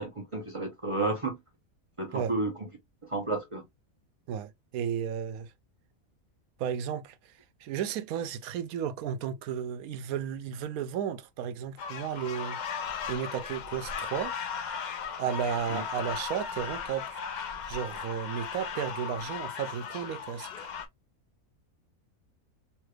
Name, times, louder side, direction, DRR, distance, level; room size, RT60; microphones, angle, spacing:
voice 1, 0.0-1.4 2.0-2.5 3.0-3.7 15.7-15.8, right 2 dB, 35° right, 0.5 m, -31 dB
voice 2, 4.3-5.5 6.6-12.6 13.1-14.3 15.2-17.2 17.7-20.7, right 8 dB, 85° right, 1.0 m, -34 dB
sound 1, 11.8-20.9, left 6 dB, 85° left, 0.4 m, -37 dB
3.3 x 3.1 x 2.2 m
omnidirectional pair, 1.5 m